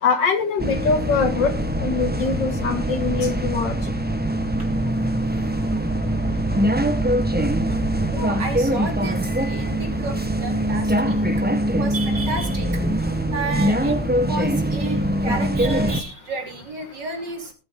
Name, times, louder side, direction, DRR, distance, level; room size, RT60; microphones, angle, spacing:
voice 1, 0.0-4.5 5.0-7.0 7.4-7.5 13.2-13.3, left 5 dB, 75° left, 8 dB, 2.4 m, -25 dB
sound 1, 0.6-16.0, right 1 dB, 10° right, 0.6 m, -23 dB
voice 2, 7.2-7.5 8.1-17.5, right 2 dB, 65° right, 3 dB, 3.9 m, -32 dB
19.5 x 8.5 x 3.7 m, 0.30 s
omnidirectional pair, 2.0 m